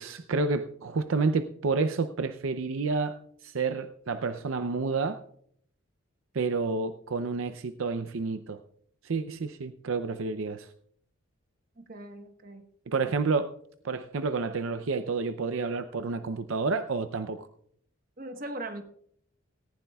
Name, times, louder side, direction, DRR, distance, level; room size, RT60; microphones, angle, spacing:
voice 1, 0.0-3.2 3.4-5.2 6.3-8.6 9.0-10.7 12.9-13.5 13.8-17.5, right 4 dB, 75° right, 10 dB, 0.6 m, -29 dB
voice 2, 11.8-12.6 18.2-18.8, right 2 dB, 45° right, 6 dB, 1.2 m, -39 dB
18.0 x 15.0 x 2.3 m, 0.64 s
head